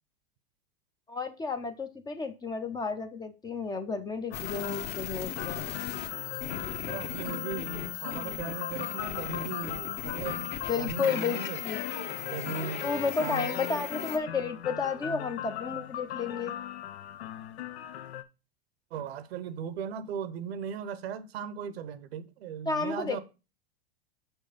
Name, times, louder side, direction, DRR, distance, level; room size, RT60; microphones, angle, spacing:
voice 1, 1.1-5.7 10.7-11.8 12.8-16.5 22.7-23.2, left 5 dB, 15° left, 0.5 m, -32 dB
sound 1, 4.3-18.2, left 11 dB, 90° left, 0.7 m, -39 dB
sound 2, 4.3-14.2, left 10 dB, 35° left, 0.9 m, -37 dB
voice 2, 6.7-11.6 12.3-13.5 18.9-23.2, right 8 dB, 80° right, 0.8 m, -38 dB
5.9 x 4.5 x 5.0 m
supercardioid pair, 130°, 31 cm